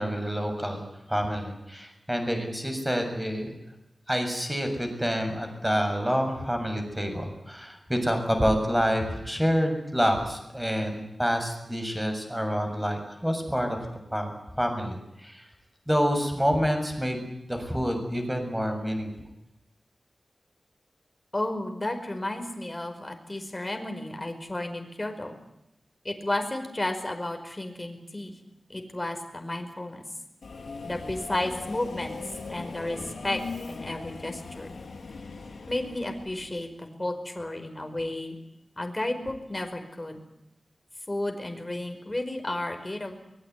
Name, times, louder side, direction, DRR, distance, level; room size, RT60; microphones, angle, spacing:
voice 1, 0.0-3.5 4.1-13.8 14.1-15.5 15.9-19.1, equal, 5° right, 5 dB, 7.0 m, -28 dB
voice 2, 21.3-25.3 26.0-28.4 28.7-30.0 30.8-32.2 32.5-33.4 33.7-34.7 35.7-38.4 38.8-40.2 41.1-43.1, left 1 dB, 20° left, 5 dB, 5.1 m, -32 dB
Subway metro underground, 30.4-36.6, left 4 dB, 80° left, 5.3 m, -39 dB
24.0 x 21.0 x 9.6 m, 0.87 s
wide cardioid pair, 110°, 0 cm